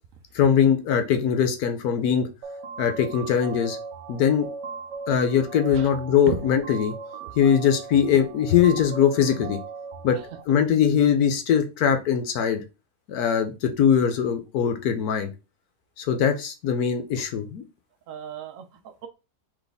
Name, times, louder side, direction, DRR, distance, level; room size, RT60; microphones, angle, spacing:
voice 1, 0.3-2.3 2.8-3.8 4.1-4.5 5.1-6.9 7.4-9.6 10.0-10.2 10.5-12.6 13.1-15.3 16.0-17.6, left 8 dB, 70° left, 1.1 m, -21 dB
sound 1, 2.4-10.4, right 5 dB, 85° right, 1.3 m, -38 dB
voice 2, 18.1-19.1, right 8 dB, 65° right, 0.8 m, -35 dB
4.1 x 3.2 x 3.4 m
omnidirectional pair, 1.8 m